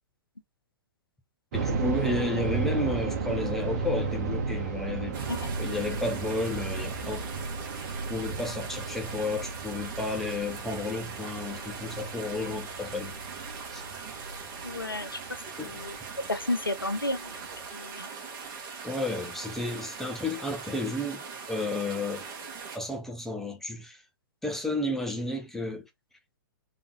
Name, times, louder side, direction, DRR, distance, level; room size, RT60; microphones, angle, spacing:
voice 1, 1.5-5.2 5.6-7.2 8.1-13.4 13.7-13.8 15.6-15.8 18.8-22.3 22.7-24.0 24.4-25.9, left 2 dB, 5° left, 1.1 m, -32 dB
sound 1, 1.5-16.4 16.7-16.8 17.4-17.7, right 4 dB, 50° right, 1.4 m, -34 dB
sound 2, 5.1-22.8, right 5 dB, 30° right, 1.8 m, -41 dB
voice 2, 5.3-6.0 14.6-15.2 15.6-15.9 16.3-17.3 17.7-18.1, left 2 dB, 90° left, 0.8 m, -32 dB
3.9 x 3.7 x 3.3 m
figure-of-eight pair, 110°, 11 cm